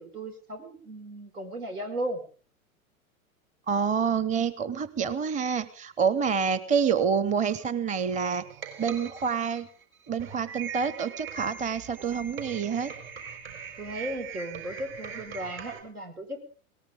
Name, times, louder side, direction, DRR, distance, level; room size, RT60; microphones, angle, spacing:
voice 1, 0.0-2.2 13.8-16.4, right 1 dB, 85° right, 4 dB, 4.7 m, -36 dB
voice 2, 3.7-8.4 8.8-9.7 10.1-12.9, right 6 dB, 15° right, 15 dB, 0.9 m, -27 dB
sound 1, 7.4-15.8, right 7 dB, 50° right, 4.5 m, -41 dB
20.5 x 18.0 x 3.6 m, 0.39 s
figure-of-eight pair, 95°, 43 cm